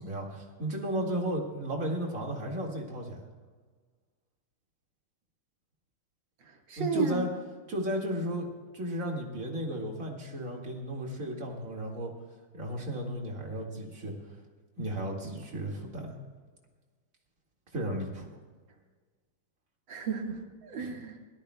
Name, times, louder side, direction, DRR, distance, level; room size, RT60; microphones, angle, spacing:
voice 1, 0.0-3.2 6.8-7.3 7.7-8.4 8.7-12.1 12.5-14.1 14.8-16.2 17.7-18.3 20.8-20.9, right 1 dB, 40° right, -1 dB, 2.4 m, -34 dB
voice 2, 6.4-7.2 19.9-21.2, right 5 dB, 60° right, 2 dB, 2.3 m, -33 dB
24.5 x 17.0 x 2.3 m, 1.5 s
omnidirectional pair, 2.4 m